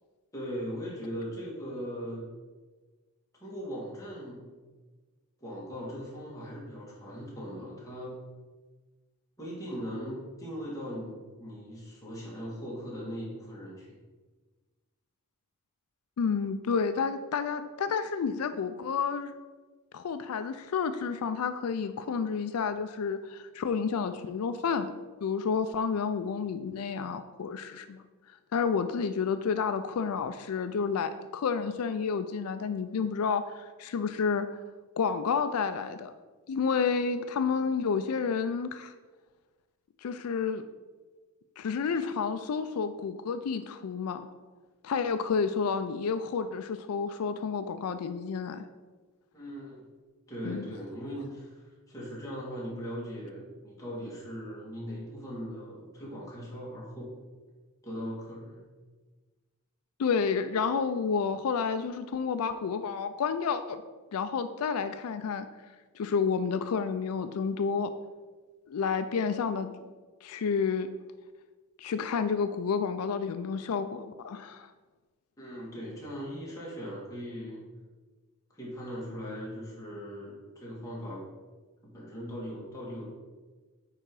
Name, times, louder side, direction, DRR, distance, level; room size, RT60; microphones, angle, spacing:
voice 1, 0.3-2.3 3.4-4.4 5.4-8.1 9.4-13.9 49.3-49.8 50.3-57.1 57.8-58.6 75.4-77.6 78.5-81.3 81.8-83.1, equal, 15° left, -6 dB, 2.2 m, -39 dB
voice 2, 16.2-19.4 19.9-28.0 28.5-34.5 35.0-36.1 36.5-38.9 40.0-40.6 41.6-44.2 44.8-48.7 50.4-50.6 60.0-63.8 64.1-65.5 65.9-67.9 68.7-69.7 70.2-70.9 71.8-74.7, left 5 dB, 80° left, 10 dB, 0.4 m, -30 dB
9.1 x 3.8 x 4.7 m, 1.3 s
head